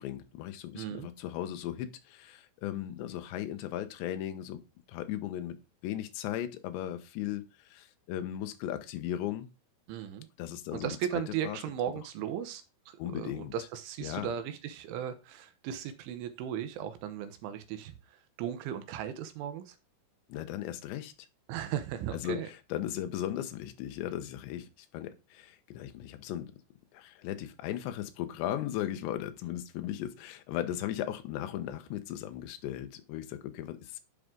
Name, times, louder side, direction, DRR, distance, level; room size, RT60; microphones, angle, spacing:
voice 1, 0.0-4.6 4.9-5.6 5.8-7.5 7.7-9.5 10.4-10.9 11.4-11.6 13.0-13.5 14.0-14.3 20.3-21.1 22.2-22.4 22.7-24.7 24.9-26.5 26.9-34.0, left 12 dB, 75° left, 2.8 m, -37 dB
voice 2, 0.7-1.1 9.9-10.3 10.7-19.8 21.5-22.5, right 10 dB, 75° right, 3.2 m, -37 dB
12.0 x 5.0 x 3.8 m
omnidirectional pair, 5.8 m